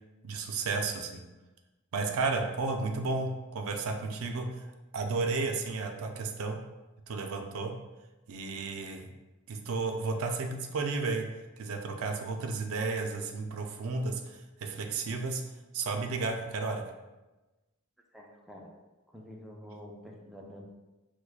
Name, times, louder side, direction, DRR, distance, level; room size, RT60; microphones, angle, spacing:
voice 1, 0.2-1.2 1.9-4.6 4.9-6.6 7.1-7.7 8.3-9.1 9.5-11.2 11.6-15.4 15.7-16.8, right 3 dB, 80° right, 4 dB, 0.4 m, -33 dB
voice 2, 18.1-18.7 19.1-20.6, equal, ahead, -2 dB, 0.3 m, -48 dB
4.5 x 2.2 x 2.3 m, 1.1 s
head